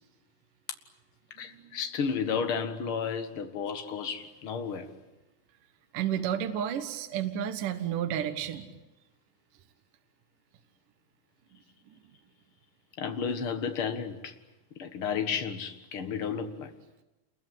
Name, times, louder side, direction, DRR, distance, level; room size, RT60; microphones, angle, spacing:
voice 1, 1.4-4.9 13.0-14.3 14.8-16.7, left 6 dB, 45° left, 1.9 m, -32 dB
voice 2, 5.9-8.7, right 9 dB, 65° right, 2.8 m, -31 dB
28.5 x 22.5 x 9.2 m
omnidirectional pair, 4.3 m